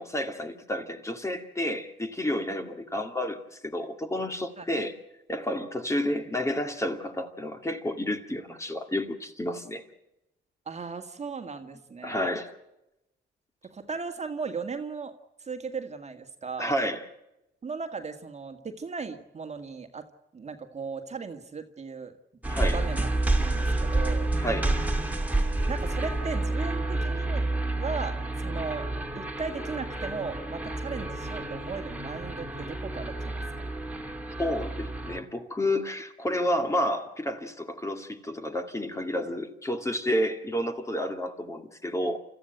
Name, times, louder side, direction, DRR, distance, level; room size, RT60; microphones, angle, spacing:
voice 1, 0.0-4.9 5.3-9.8 12.0-12.5 16.6-17.0 22.5-22.8 24.4-24.8 34.4-42.2, left 1 dB, 15° left, 2.2 m, -30 dB
voice 2, 10.7-12.3 13.6-15.1 15.4-16.7 17.6-20.1 20.3-22.1 22.7-23.1 23.4-24.3 25.7-27.5 27.8-28.9 29.1-33.7, right 5 dB, 35° right, 1.9 m, -37 dB
sound 1, 22.4-35.2, right 2 dB, 10° right, 2.4 m, -29 dB
29.5 x 14.0 x 7.8 m
cardioid pair, 90°, 20 cm